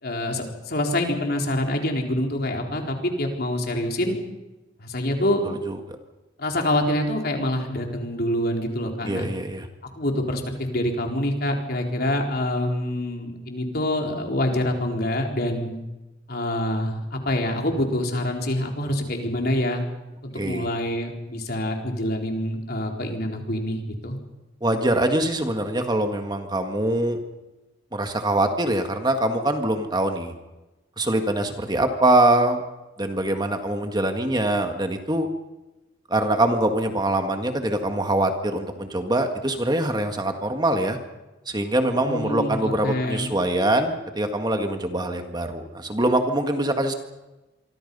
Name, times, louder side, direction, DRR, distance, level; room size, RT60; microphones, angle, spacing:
voice 1, 0.0-4.2 4.8-5.4 6.4-9.3 10.0-15.7 16.3-19.8 20.2-24.2 42.0-43.3, left 1 dB, 55° left, 2 dB, 4.0 m, -26 dB
voice 2, 5.4-6.0 9.1-9.7 20.4-20.7 24.6-27.2 27.9-30.3 31.0-32.6 33.0-35.3 36.1-41.0 41.5-46.9, right 1 dB, 20° right, 5 dB, 1.8 m, -23 dB
27.0 x 24.5 x 5.5 m, 1.1 s
head